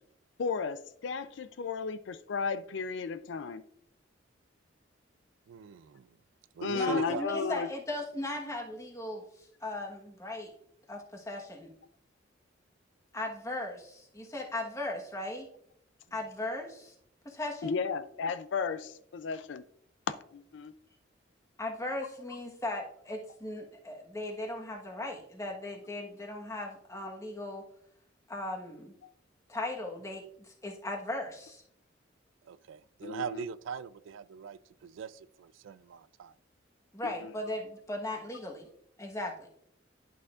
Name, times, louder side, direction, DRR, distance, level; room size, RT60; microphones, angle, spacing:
voice 1, 0.4-3.6 6.6-7.7 17.6-19.6 20.3-20.7 33.0-33.5 37.0-37.3, left 5 dB, 65° left, 0.4 m, -34 dB
voice 2, 5.5-6.1 6.6-7.3 32.4-36.3, right 7 dB, 80° right, 0.3 m, -41 dB
voice 3, 6.7-10.5 10.9-11.7 13.1-15.5 16.1-16.9 17.2-17.8 21.6-27.6 28.3-28.9 29.5-31.6 36.9-38.6 39.0-39.5, left 1 dB, 15° left, 1.2 m, -37 dB
11.0 x 5.9 x 2.4 m
head